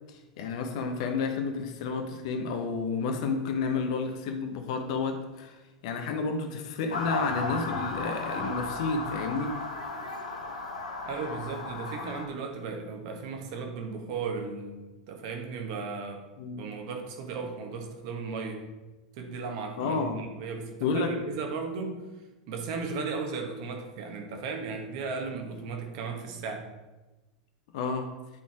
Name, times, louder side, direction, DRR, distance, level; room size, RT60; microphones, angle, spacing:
voice 1, 0.1-5.6 5.8-9.6 16.4-16.6 19.8-20.3 20.8-21.1 27.7-28.2, left 4 dB, 65° left, 5 dB, 1.0 m, -31 dB
Motor vehicle (road) / Siren, 6.9-12.3, left 3 dB, 85° left, 1.0 m, -35 dB
voice 2, 11.0-16.3 16.6-18.7 19.2-22.0 22.5-26.7, right 4 dB, 60° right, 4 dB, 1.4 m, -36 dB
10.0 x 4.2 x 3.6 m, 1.1 s
hypercardioid pair, 95°, 4 cm